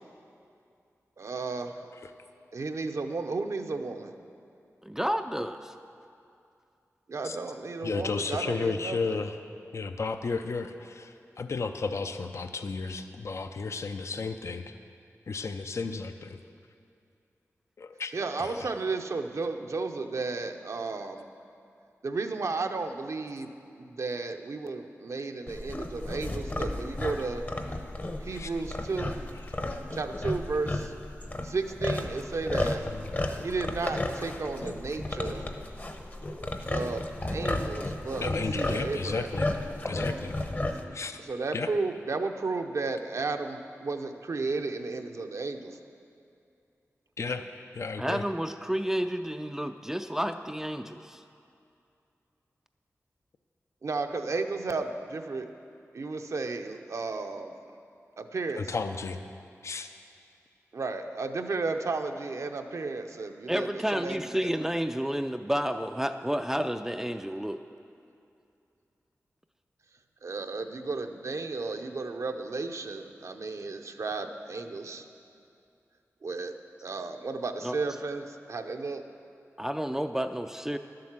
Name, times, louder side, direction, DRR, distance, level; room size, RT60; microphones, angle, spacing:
voice 1, 1.2-1.9 2.5-4.1 7.1-9.2 18.1-21.3 22.0-27.4 28.2-29.2 29.9-30.9 31.4-32.9 33.4-35.5 36.7-39.3 41.3-45.8 53.8-55.5 55.9-57.5 58.2-58.7 60.7-64.2 70.2-75.1 76.2-76.5 76.8-79.0, right 3 dB, 65° right, 5 dB, 0.7 m, -33 dB
voice 2, 4.8-5.8 48.0-51.2 63.5-67.6 77.6-77.8 79.6-80.8, equal, 10° right, 7 dB, 0.4 m, -30 dB
voice 3, 7.8-9.4 9.7-14.7 15.3-16.4 17.8-18.1 18.4-18.7 28.3-28.5 29.5-29.6 32.9-33.2 38.2-39.5 39.8-40.3 40.9-41.2 41.5-41.7 47.2-47.4 47.7-48.2 58.5-59.2 59.6-59.9, left 4 dB, 60° left, 8 dB, 0.5 m, -33 dB
sound 1, 25.5-40.9, left 1 dB, 35° left, 0.9 m, -33 dB
11.5 x 7.6 x 7.4 m, 2.5 s
wide cardioid pair, 65°, 6 cm